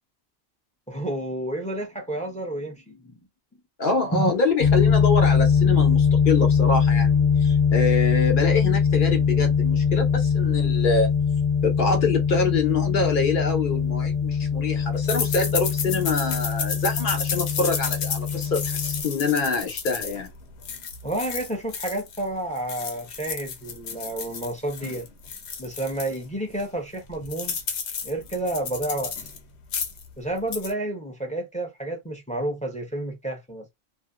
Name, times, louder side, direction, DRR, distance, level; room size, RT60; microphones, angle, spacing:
voice 1, 0.9-3.2 4.1-4.3 21.0-25.1 25.6-27.6 28.0-29.2 30.2-33.6, right 1 dB, 10° left, 0.5 m, -30 dB
voice 2, 3.8-11.1 11.6-20.3, left 4 dB, 55° left, 1.0 m, -25 dB
sound 1, 4.6-19.0, left 6 dB, 30° left, 0.9 m, -22 dB
sound 2, 15.1-22.2 22.6-26.2 26.6-26.7 26.9-29.4 29.6-30.1 30.4-30.7, left 6 dB, 90° left, 1.0 m, -32 dB
2.5 x 2.2 x 2.3 m
omnidirectional pair, 1.1 m